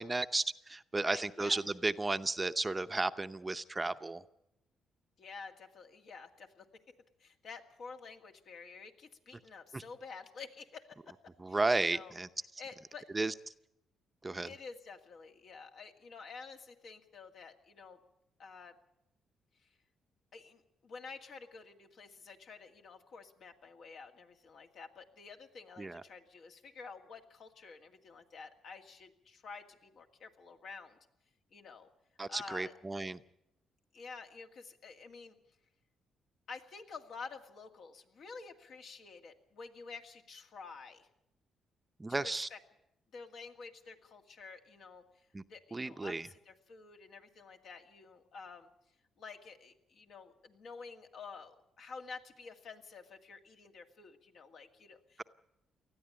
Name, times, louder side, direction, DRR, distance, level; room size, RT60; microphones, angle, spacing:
voice 1, 0.0-4.2 9.7-9.8 11.4-12.3 13.1-13.3 14.2-14.5 25.8-26.0 32.2-33.2 42.0-42.5 45.3-45.4 45.7-46.3, right 2 dB, 20° right, 11 dB, 0.7 m, -33 dB
voice 2, 1.0-1.6 5.2-6.8 7.2-11.1 11.5-12.1 12.6-13.1 14.5-18.0 18.4-18.7 20.3-31.0 31.5-31.9 32.3-32.7 33.9-35.4 36.5-41.1 42.1-42.6 43.1-45.0 45.5-48.7 49.2-55.2, left 5 dB, 65° left, 4 dB, 2.1 m, -50 dB
20.0 x 13.5 x 9.8 m, 0.86 s
cardioid pair, 90°, 0 cm